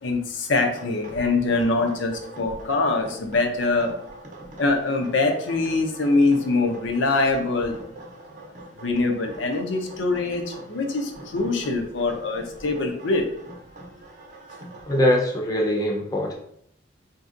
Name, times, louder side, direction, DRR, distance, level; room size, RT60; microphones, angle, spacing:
voice 1, 0.0-3.9 4.6-7.8 8.8-13.3, left 3 dB, 75° left, 4 dB, 0.5 m, -23 dB
sound 1, 0.7-15.0, right 2 dB, 45° right, 0.6 m, -44 dB
voice 2, 14.9-16.4, left 1 dB, 20° left, -1 dB, 0.6 m, -22 dB
4.3 x 2.7 x 2.4 m, 0.69 s
head